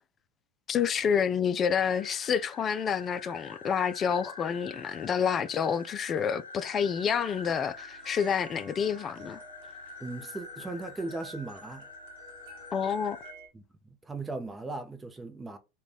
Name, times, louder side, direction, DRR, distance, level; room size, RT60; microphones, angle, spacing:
voice 1, 0.7-9.4 12.7-13.2, left 7 dB, 35° left, 0.4 m, -28 dB
sound 1, 1.8-13.3, left 5 dB, 85° left, 0.6 m, -47 dB
sound 2, 7.1-13.5, right 3 dB, 65° right, 0.9 m, -51 dB
voice 2, 10.0-11.9 13.5-15.6, right 3 dB, 15° right, 0.7 m, -38 dB
3.8 x 2.2 x 3.3 m
hypercardioid pair, 85°, 0 cm